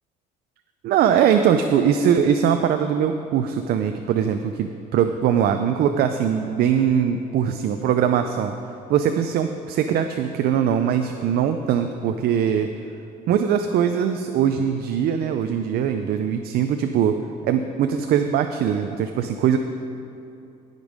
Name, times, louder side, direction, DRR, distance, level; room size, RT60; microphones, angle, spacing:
voice 1, 0.8-8.5 8.9-12.7 13.3-17.2 17.4-19.6, right 8 dB, 65° right, 7 dB, 0.5 m, -21 dB
16.0 x 5.3 x 5.1 m, 2.8 s
cardioid pair, 110°, 17 cm